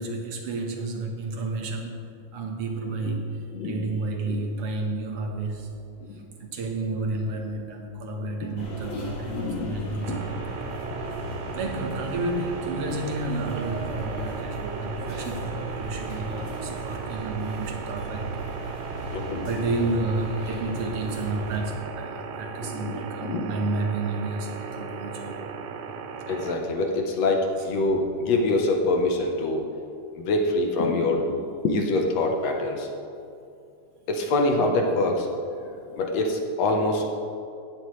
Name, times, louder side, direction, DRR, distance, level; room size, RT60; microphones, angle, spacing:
voice 1, 0.0-2.0 2.3-5.7 6.1-10.2 11.5-18.4 19.4-25.5, right 2 dB, 55° right, 3 dB, 2.0 m, -31 dB
voice 2, 3.5-3.9 4.2-4.4 8.7-10.2 19.1-19.5 22.6-23.6 26.3-29.6 30.2-31.4 31.6-32.9 34.1-35.3 35.9-37.2, left 2 dB, 65° left, 2 dB, 2.1 m, -25 dB
sound 1, 8.6-21.6, right 1 dB, 90° left, 4.7 m, -36 dB
sound 2, 10.0-26.6, right 6 dB, 85° right, 2.2 m, -37 dB
17.0 x 12.0 x 3.2 m, 2.5 s
omnidirectional pair, 3.4 m